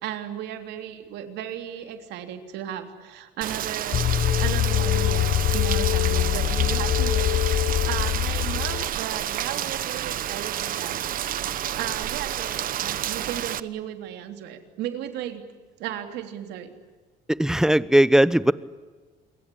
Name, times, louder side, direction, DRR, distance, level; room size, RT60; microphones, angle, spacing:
voice 1, 0.0-4.0 4.4-11.0 11.8-15.4 15.8-16.7, right 11 dB, 85° right, 7 dB, 3.3 m, -35 dB
Rain, 3.4-13.6, right 11 dB, 55° right, 1.0 m, -30 dB
sound 1, 3.9-8.9, left 12 dB, 50° left, 0.8 m, -23 dB
voice 2, 17.4-18.5, right 1 dB, 5° right, 17 dB, 0.9 m, -18 dB
28.5 x 22.5 x 8.6 m, 1.4 s
cardioid pair, 110°, 17 cm